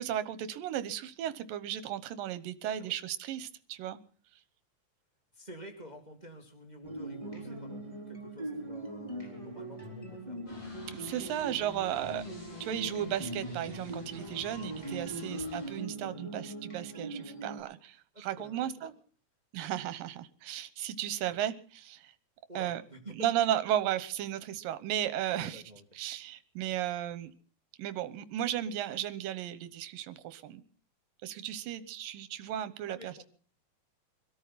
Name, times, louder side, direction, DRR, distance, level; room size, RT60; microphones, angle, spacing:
voice 1, 0.0-4.0 10.9-12.3 12.6-18.9 19.5-22.1 22.6-22.8 23.2-25.6 26.0-27.3 27.8-30.6 31.2-33.2, right 11 dB, 75° right, 13 dB, 2.7 m, -35 dB
voice 2, 2.6-3.0 5.3-10.4 11.6-12.2 15.1-15.3 18.1-19.0 19.6-19.7 22.5-23.1 25.3-25.8 32.9-33.2, equal, 15° right, 4 dB, 1.7 m, -50 dB
sound 1, 6.8-17.6, right 1 dB, 10° left, 3.7 m, -41 dB
sound 2, 10.5-15.9, left 1 dB, 60° left, 9.4 m, -52 dB
24.5 x 13.0 x 4.1 m, 0.42 s
omnidirectional pair, 4.1 m